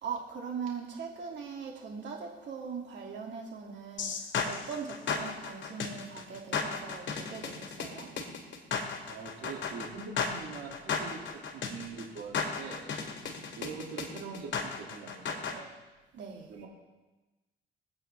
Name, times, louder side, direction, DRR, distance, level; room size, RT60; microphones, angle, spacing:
voice 1, 0.0-8.1 16.1-16.5, right 6 dB, 65° right, 0 dB, 2.6 m, -40 dB
sound 1, 4.0-15.6, left 5 dB, 65° left, 2.1 m, -35 dB
voice 2, 9.1-12.8 13.6-15.7 16.5-16.7, right 5 dB, 90° right, -2 dB, 2.6 m, -43 dB
25.5 x 8.8 x 3.5 m, 1.1 s
cardioid pair, 90°, 20 cm